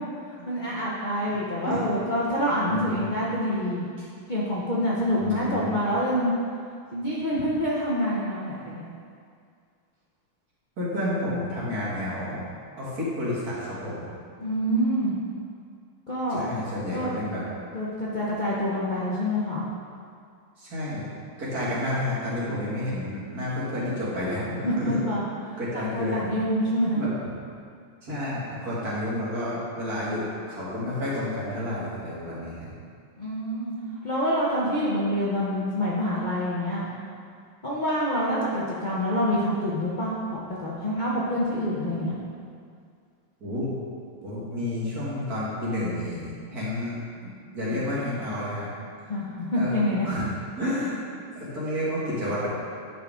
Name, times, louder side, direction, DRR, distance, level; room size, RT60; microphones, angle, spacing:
voice 1, 0.5-3.9 4.3-6.3 6.9-8.8 14.4-15.2 16.1-16.4 16.9-17.1 17.7-19.7 24.6-27.0 33.2-33.7 34.0-36.9 37.6-40.1 40.6-42.2 49.1-50.1, equal, 90° left, -7 dB, 0.4 m, -26 dB
voice 2, 2.7-3.1 5.2-5.8 10.8-12.5 12.8-14.1 16.3-17.4 20.6-21.1 21.4-25.1 25.6-26.4 27.0-27.1 28.0-30.2 30.5-32.7 43.4-43.7 44.2-47.3 47.5-48.7 49.5-49.7 50.0-50.3 50.6-51.0 51.3-52.5, left 1 dB, 45° right, -8 dB, 2.4 m, -30 dB
9.6 x 5.5 x 3.6 m, 2.2 s
omnidirectional pair, 2.4 m